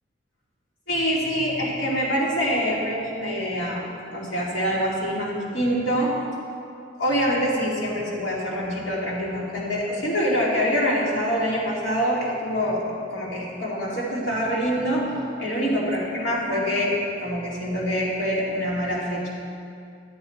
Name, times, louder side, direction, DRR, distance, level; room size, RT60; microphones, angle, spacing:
voice 1, 0.9-3.8 4.1-6.1 7.0-12.8 13.1-15.1 15.4-19.3, equal, 80° left, -6 dB, 2.6 m, -25 dB
12.0 x 7.9 x 4.4 m, 2.5 s
head